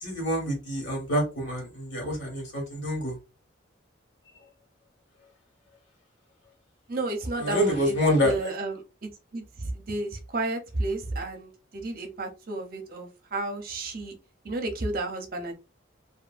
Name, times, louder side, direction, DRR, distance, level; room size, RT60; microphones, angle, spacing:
voice 1, 0.0-3.2 7.4-8.5, equal, 65° left, 0 dB, 1.5 m, -27 dB
voice 2, 6.9-8.0 8.2-14.2 14.4-15.5, right 2 dB, 45° right, 5 dB, 0.6 m, -32 dB
2.6 x 2.6 x 2.5 m, 0.29 s
head